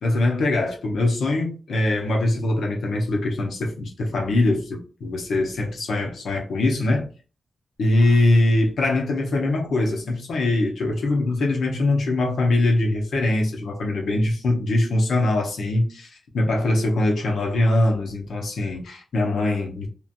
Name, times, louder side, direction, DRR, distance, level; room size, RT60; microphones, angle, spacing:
voice 1, 0.0-7.1 7.8-19.9, left 2 dB, 80° left, 0.9 m, -22 dB
3.0 x 2.5 x 2.5 m
wide cardioid pair, 125°, 0 cm